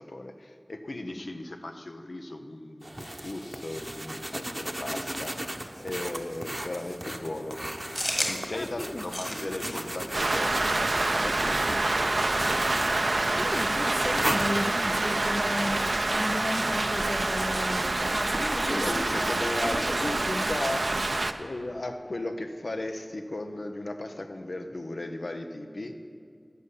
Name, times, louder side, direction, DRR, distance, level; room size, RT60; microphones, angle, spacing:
voice 1, 0.0-7.6 8.2-12.4 18.6-20.9 21.4-25.9, left 2 dB, 90° left, 0.8 m, -36 dB
sound 1, 2.8-15.2, right 1 dB, 25° right, 0.8 m, -37 dB
sound 2, 7.9-20.0, left 1 dB, 35° left, 1.8 m, -41 dB
voice 2, 8.5-9.0 13.1-20.5, left 1 dB, 55° left, 0.5 m, -34 dB
Rain, 10.1-21.3, right 2 dB, 80° right, 0.5 m, -27 dB
14.0 x 5.6 x 8.3 m
wide cardioid pair, 45°, 0 cm